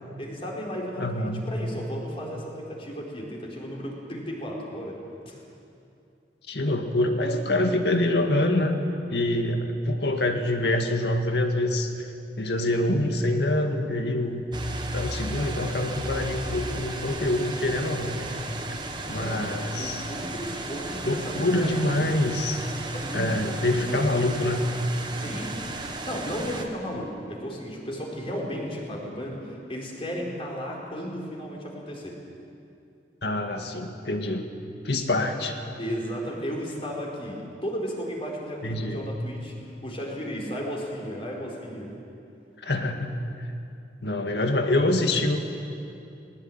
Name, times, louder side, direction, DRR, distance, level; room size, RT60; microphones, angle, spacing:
voice 1, 0.2-5.0 5.2-5.4 19.1-22.2 22.9-24.1 25.1-25.5 26.0-32.2 35.8-39.5 39.8-42.0, equal, 35° left, -2 dB, 4.4 m, -34 dB
voice 2, 1.0-1.5 6.5-8.8 9.1-12.1 12.4-14.5 14.9-18.3 19.1-20.0 21.0-22.6 23.1-24.7 33.2-34.5 34.8-35.5 38.6-39.0 42.6-43.2 44.0-45.4, left 1 dB, 70° left, 4 dB, 2.0 m, -25 dB
sound 1, 14.5-26.6, right 2 dB, 25° right, 1.6 m, -35 dB
19.5 x 19.0 x 8.9 m, 2.7 s
head